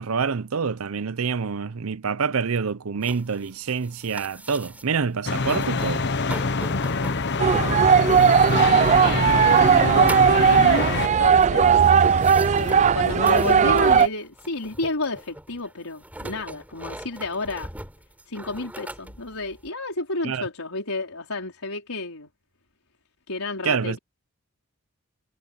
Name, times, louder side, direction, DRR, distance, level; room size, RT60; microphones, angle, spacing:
voice 1, 0.0-6.1 20.2-20.4 23.6-24.0, right 5 dB, 75° right, 0.6 m, -26 dB
sound 1, 3.0-5.1 5.3-6.0 6.3-19.7, right 1 dB, 5° right, 4.4 m, -41 dB
sound 2, 5.3-11.1, left 3 dB, 55° left, 1.0 m, -25 dB
voice 2, 6.3-11.8 12.6-17.7 18.3-22.3 23.3-24.0, left 3 dB, 85° left, 4.6 m, -31 dB
sound 3, 7.4-14.1, right 6 dB, 30° right, 0.3 m, -17 dB
head